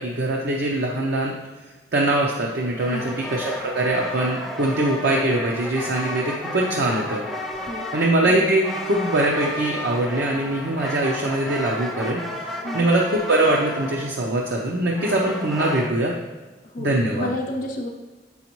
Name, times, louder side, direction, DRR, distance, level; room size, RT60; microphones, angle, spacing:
voice 1, 0.0-1.3 1.9-7.2 7.9-12.2 12.7-16.1 16.8-17.3, right 1 dB, 65° right, -2 dB, 0.7 m, -22 dB
sound 1, 2.8-15.9, left 1 dB, ahead, 0.5 m, -33 dB
voice 2, 16.7-17.9, left 1 dB, 50° left, 0 dB, 0.7 m, -30 dB
7.1 x 5.5 x 3.0 m, 1.3 s
head